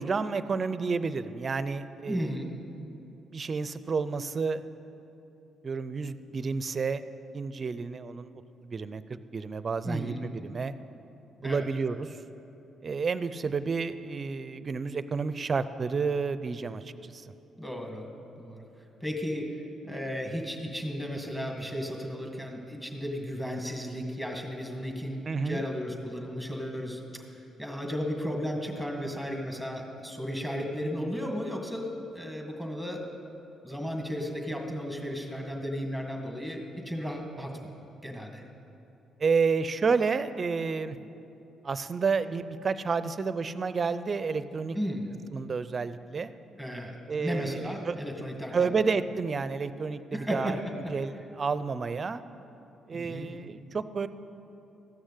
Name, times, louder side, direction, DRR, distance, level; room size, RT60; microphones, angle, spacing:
voice 1, 0.0-2.3 3.3-4.6 5.6-7.0 7.3-8.3 8.6-9.0 9.3-10.7 11.4-12.1 12.8-17.2 25.3-25.6 39.2-41.0 41.6-44.8 45.3-46.3 47.1-48.0 48.5-50.6 50.9-52.2 52.9-54.1, right 5 dB, 40° right, 13 dB, 0.5 m, -30 dB
voice 2, 2.1-2.5 9.8-10.2 11.4-11.7 17.6-18.1 18.4-18.7 19.0-19.5 19.8-27.0 27.6-33.0 33.6-37.5 38.0-38.4 44.7-45.1 46.6-48.7 50.1-50.6 52.9-53.3, equal, 10° left, 1 dB, 1.9 m, -34 dB
14.5 x 6.4 x 8.2 m, 2.9 s
cardioid pair, 90°, 0 cm